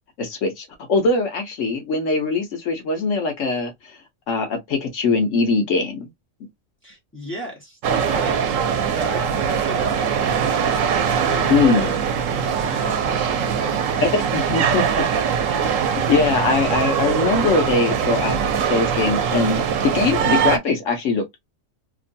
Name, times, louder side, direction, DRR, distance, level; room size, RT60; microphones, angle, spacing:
voice 1, 0.2-3.7 4.3-6.1 11.5-11.9 14.3-15.1 15.6-15.8 16.1-21.4, left 4 dB, 75° left, 1.2 m, -21 dB
voice 2, 6.8-8.6 8.9-10.9 11.3-12.0 12.6-14.4, equal, 10° left, 1.0 m, -35 dB
sound 1, 7.8-20.6, right 7 dB, 85° right, 1.0 m, -22 dB
3.0 x 2.2 x 2.5 m
omnidirectional pair, 1.3 m